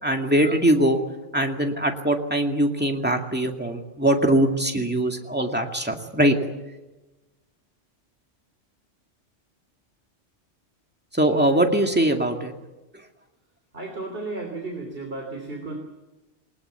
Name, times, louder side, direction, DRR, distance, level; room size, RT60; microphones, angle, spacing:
voice 1, 0.0-1.0 1.3-6.5 11.1-12.5 12.9-13.1, right 1 dB, 10° right, 3 dB, 2.1 m, -22 dB
voice 2, 13.7-15.8, right 3 dB, 50° right, 2 dB, 3.5 m, -33 dB
20.5 x 20.0 x 8.1 m, 1.1 s
omnidirectional pair, 1.2 m